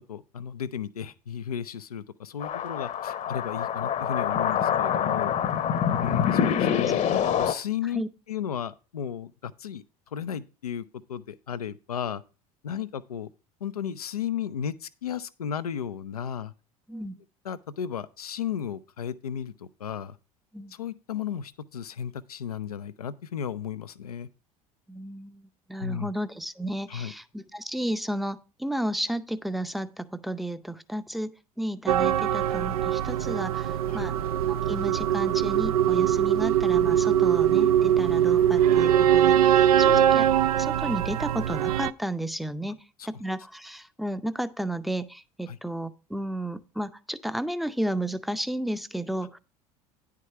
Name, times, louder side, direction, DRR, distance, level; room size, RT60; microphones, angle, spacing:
voice 1, 0.1-5.3 6.0-8.0 8.3-12.2 12.6-13.3 13.6-16.5 17.4-20.2 20.7-24.3 25.8-26.1 26.9-27.1 33.9-34.1 39.8-40.1 43.0-43.1 45.5-45.6, left 8 dB, 85° left, 0.5 m, -34 dB
sound 1, 2.4-7.5, left 8 dB, 40° left, 0.8 m, -26 dB
voice 2, 24.9-34.2 34.5-40.3 40.5-42.8 43.1-49.4, right 1 dB, ahead, 0.6 m, -33 dB
sound 2, 31.9-41.9, right 10 dB, 80° right, 0.4 m, -22 dB
9.9 x 4.8 x 5.7 m
hypercardioid pair, 75°, 19 cm